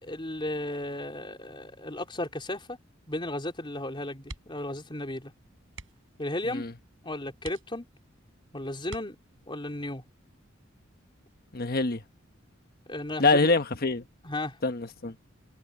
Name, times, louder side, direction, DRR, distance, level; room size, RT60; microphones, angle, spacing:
voice 1, 0.0-2.8 3.1-5.3 6.2-6.7 7.0-7.8 8.5-9.2 9.5-10.0 12.9-13.5 14.2-14.6, left 1 dB, 25° left, 3.8 m, -34 dB
sound 1, 4.2-4.8 5.0-5.2 5.7-6.2 6.8-6.9 7.4-8.1 8.8-9.6 11.2-11.5 11.9-12.0, right 3 dB, 70° right, 6.8 m, -46 dB
voice 2, 11.5-12.0 13.2-14.0 14.6-15.1, left 3 dB, 50° left, 1.3 m, -25 dB
head